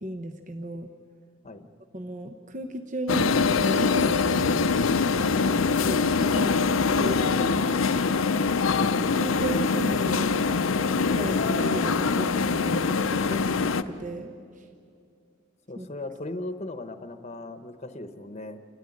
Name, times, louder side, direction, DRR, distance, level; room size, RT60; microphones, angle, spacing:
voice 1, 0.0-0.9 1.9-3.3 3.6-4.8 5.4-7.6 8.8-10.4 11.0-14.7 15.8-15.9, right 1 dB, 40° right, 6 dB, 0.9 m, -35 dB
sound 1, 3.1-13.8, left 4 dB, 85° left, 0.7 m, -23 dB
voice 2, 15.7-18.6, left 2 dB, 35° left, 9 dB, 1.0 m, -37 dB
28.5 x 13.5 x 9.8 m, 2.4 s
head